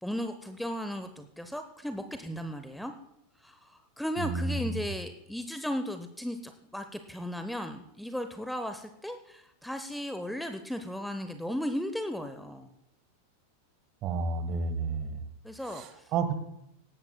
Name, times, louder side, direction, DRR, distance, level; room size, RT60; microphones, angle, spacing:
voice 1, 0.0-2.9 3.4-12.7 15.4-16.0, equal, ahead, 8 dB, 0.9 m, -36 dB
voice 2, 4.2-4.8 14.0-15.2 15.6-16.3, right 4 dB, 35° right, 11 dB, 1.4 m, -31 dB
18.0 x 16.0 x 2.2 m, 0.83 s
figure-of-eight pair, 90°, 0 cm